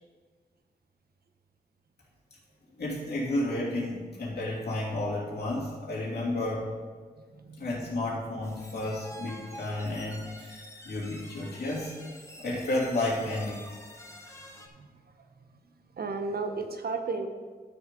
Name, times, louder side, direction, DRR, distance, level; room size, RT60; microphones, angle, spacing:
voice 1, 2.8-6.7 7.6-12.0 12.4-13.6, left 1 dB, 85° left, -5 dB, 2.8 m, -32 dB
voice 2, 7.3-7.7 14.7-14.9 15.9-17.3, right 4 dB, 70° right, 6 dB, 0.9 m, -33 dB
sound 1, 8.4-14.7, equal, 15° left, 0.9 m, -47 dB
12.0 x 7.1 x 3.8 m, 1.5 s
wide cardioid pair, 115°, 16 cm